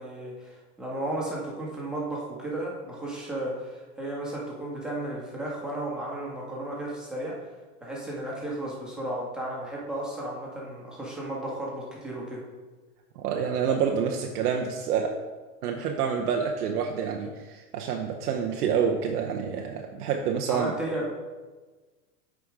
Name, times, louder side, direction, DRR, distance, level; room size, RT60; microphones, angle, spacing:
voice 1, 0.0-7.4 7.8-12.5 20.5-21.1, right 1 dB, ahead, -5 dB, 1.8 m, -34 dB
voice 2, 13.2-15.1 15.6-20.7, right 7 dB, 75° right, 2 dB, 0.8 m, -28 dB
8.0 x 5.0 x 3.6 m, 1.3 s
hypercardioid pair, 120°, 47 cm